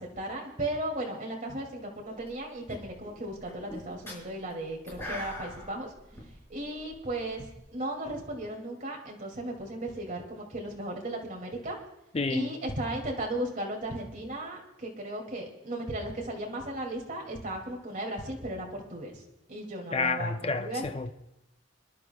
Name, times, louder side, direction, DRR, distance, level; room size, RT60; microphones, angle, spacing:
voice 1, 0.0-5.9 6.5-11.8 12.3-19.2 19.5-20.3 20.6-20.9, right 1 dB, 40° right, 2.4 m, -36 dB
sound 1, 2.0-2.4 2.7-7.6, left 1 dB, 15° left, 5.2 m, -43 dB
voice 2, 12.1-12.6 19.9-21.1, left 3 dB, 30° left, 0.5 m, -30 dB
29.5 x 11.5 x 2.3 m
head